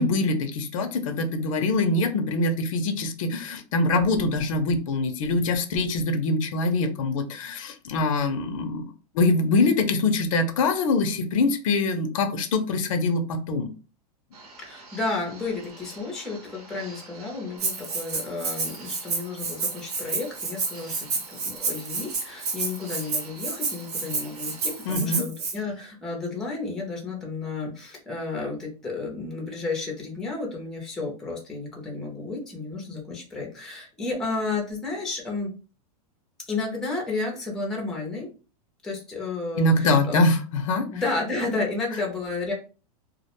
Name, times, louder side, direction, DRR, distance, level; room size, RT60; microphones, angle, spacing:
voice 1, 0.0-8.9 9.1-13.7 24.9-25.2 39.6-41.0, left 2 dB, 60° left, 7 dB, 0.5 m, -24 dB
sound 1, 14.3-25.0, right 3 dB, 80° right, 1.0 m, -47 dB
voice 2, 14.6-35.5 36.5-38.3 38.8-40.2 40.9-42.5, left 3 dB, ahead, -2 dB, 0.5 m, -32 dB
Rattle (instrument), 17.6-25.5, right 4 dB, 45° right, 0.8 m, -30 dB
2.3 x 2.1 x 2.9 m, 0.35 s
supercardioid pair, 160°, 19 cm